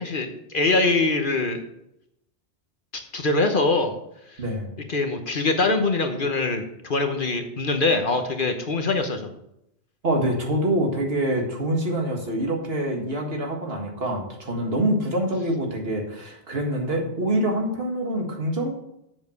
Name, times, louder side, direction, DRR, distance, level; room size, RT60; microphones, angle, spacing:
voice 1, 0.0-1.6 3.1-4.0 4.9-9.3, left 3 dB, 50° left, 6 dB, 1.2 m, -23 dB
voice 2, 10.0-18.7, right 1 dB, 60° right, 1 dB, 2.1 m, -25 dB
7.8 x 7.2 x 6.4 m, 0.81 s
omnidirectional pair, 1.2 m